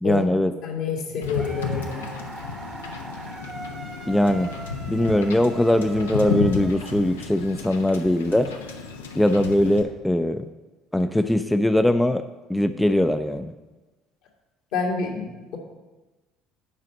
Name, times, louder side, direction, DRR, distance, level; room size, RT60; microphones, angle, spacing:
voice 1, 0.0-0.5 4.1-4.5 4.9-8.5 9.1-10.5 10.9-12.2 12.5-13.5, left 1 dB, 5° left, 8 dB, 0.4 m, -21 dB
voice 2, 0.6-2.1 14.7-15.6, left 5 dB, 65° left, -1 dB, 1.9 m, -28 dB
Wind / Boat Water vehicle, 1.2-9.8, left 5 dB, 80° left, 0.7 m, -33 dB
sound 1, 1.3-7.4, right 2 dB, 20° right, 0.8 m, -40 dB
7.5 x 5.0 x 6.1 m, 1.2 s
figure-of-eight pair, 60°, 0 cm